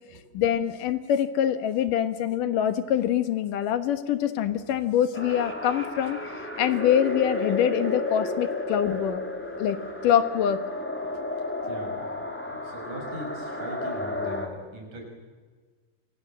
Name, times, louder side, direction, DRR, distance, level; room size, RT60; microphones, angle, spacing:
voice 1, 0.3-6.2 6.6-9.2 9.6-9.8 10.0-10.6, left 10 dB, 65° left, 9 dB, 2.7 m, -24 dB
sound 1, 5.1-14.5, left 2 dB, 5° left, 0.9 m, -32 dB
voice 2, 11.7-12.0 12.5-15.1, right 1 dB, 55° right, 2 dB, 7.2 m, -40 dB
27.5 x 25.5 x 7.6 m, 1.5 s
omnidirectional pair, 4.4 m